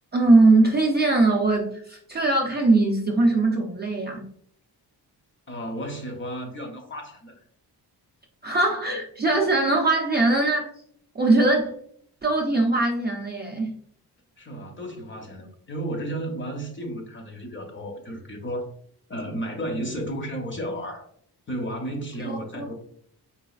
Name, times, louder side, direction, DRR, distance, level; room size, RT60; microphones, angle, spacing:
voice 1, 0.1-4.2 8.4-10.7 11.1-11.7 12.2-13.8 22.2-22.7, right 2 dB, 25° right, 0.4 m, -21 dB
voice 2, 5.5-7.4 14.4-18.7 19.1-21.0 21.5-22.7, right 1 dB, 30° left, 0.6 m, -33 dB
4.0 x 2.4 x 2.3 m
wide cardioid pair, 130°, 39 cm